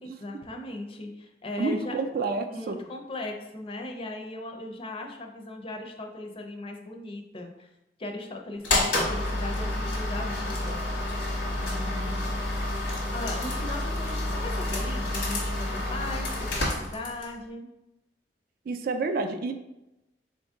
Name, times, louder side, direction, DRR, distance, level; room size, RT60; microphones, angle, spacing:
voice 1, 0.0-2.0 2.5-7.7 8.0-10.8 11.5-12.3 13.1-17.7, left 2 dB, 30° left, 3 dB, 0.5 m, -38 dB
voice 2, 1.6-2.8 18.7-19.5, right 3 dB, 55° right, 7 dB, 0.3 m, -29 dB
sound 1, 8.6-17.4, left 1 dB, 85° left, 1.1 m, -29 dB
3.8 x 2.6 x 3.5 m, 0.90 s
head